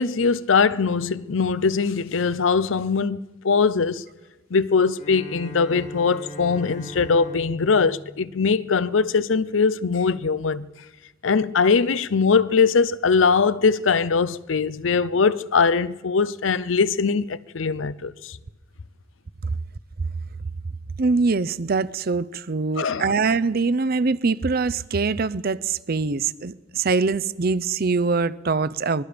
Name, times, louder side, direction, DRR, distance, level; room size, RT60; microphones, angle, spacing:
voice 1, 0.0-4.0 4.5-10.7 11.2-18.4 22.8-23.1, left 5 dB, 75° left, 0.6 m, -21 dB
Bowed string instrument, 4.9-9.2, equal, 40° left, 1.9 m, -40 dB
voice 2, 21.0-29.0, right 4 dB, 50° right, 0.6 m, -23 dB
24.5 x 21.0 x 5.2 m
head